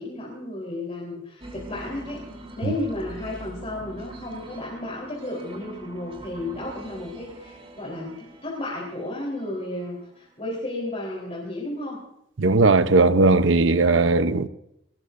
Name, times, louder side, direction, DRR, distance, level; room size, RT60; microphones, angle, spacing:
voice 1, 0.0-2.2 2.6-12.0, left 1 dB, 35° left, -3 dB, 3.8 m, -33 dB
sound 1, 1.4-10.4, right 1 dB, 30° right, 3.5 m, -43 dB
voice 2, 12.4-14.5, right 3 dB, 80° right, 12 dB, 0.8 m, -18 dB
21.5 x 19.0 x 2.6 m, 0.78 s
head